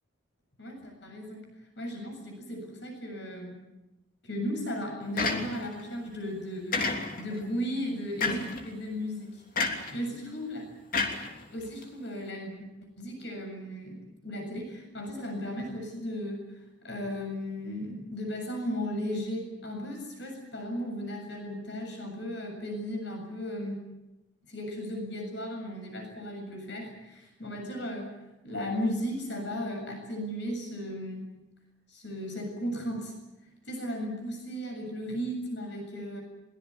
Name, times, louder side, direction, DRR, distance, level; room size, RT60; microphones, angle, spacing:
voice 1, 0.6-1.5 1.8-3.7 4.2-10.6 11.5-12.7 13.0-23.9 24.5-28.2 28.4-31.4 31.9-33.2 33.6-36.2, equal, 65° left, 2 dB, 7.4 m, -36 dB
sound 1, 5.2-5.8 6.7-7.4 8.2-8.6 9.6-10.0 10.9-11.8, left 3 dB, 45° left, 3.1 m, -30 dB
23.0 x 22.0 x 8.7 m, 0.97 s
head